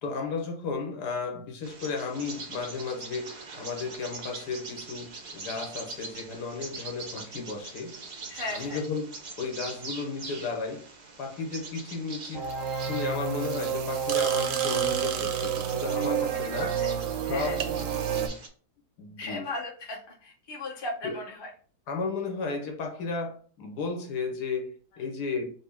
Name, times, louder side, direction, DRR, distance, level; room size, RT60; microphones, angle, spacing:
voice 1, 0.0-8.0 8.5-10.9 11.2-12.5 12.7-16.7 17.2-17.7 19.0-19.5 21.0-21.2 21.9-25.5, left 4 dB, 85° left, 1.4 m, -34 dB
Bird vocalization bird call bird song, 1.6-18.5, right 3 dB, 85° right, 0.4 m, -43 dB
voice 2, 8.3-8.8 16.2-16.9 17.2-17.6 19.2-21.5, left 2 dB, 25° left, 0.6 m, -37 dB
sound 1, 12.3-18.3, right 8 dB, 70° right, 0.8 m, -29 dB
4.1 x 2.0 x 3.4 m
omnidirectional pair, 1.7 m